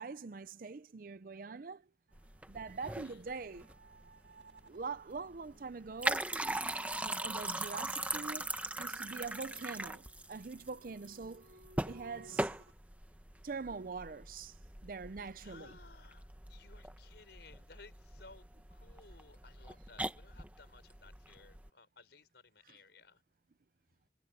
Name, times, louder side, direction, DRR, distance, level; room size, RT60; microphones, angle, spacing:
voice 1, 0.0-1.9 2.5-3.7 4.6-6.3 7.0-8.5 8.8-11.6 11.9-12.5 13.4-14.6 14.8-15.7, right 4 dB, 50° right, 0.5 m, -43 dB
sound 1, 2.1-21.7, right 1 dB, 10° right, 0.9 m, -40 dB
sound 2, 2.1-12.7, right 2 dB, 80° right, 2.0 m, -61 dB
voice 2, 2.8-3.2 15.3-23.2 23.9-24.0, left 4 dB, 70° left, 4.6 m, -59 dB
head